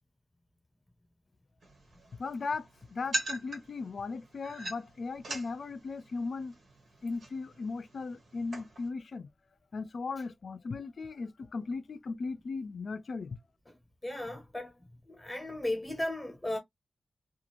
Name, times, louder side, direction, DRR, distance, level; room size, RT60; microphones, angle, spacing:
sound 1, 1.6-8.9, right 1 dB, 80° right, 1.3 m, -42 dB
voice 1, 2.2-6.5 7.0-9.3 9.7-13.4, left 4 dB, 60° left, 0.4 m, -37 dB
voice 2, 14.0-14.7 15.1-16.6, left 1 dB, 15° left, 0.8 m, -35 dB
2.4 x 2.4 x 2.9 m
wide cardioid pair, 165°, 0 cm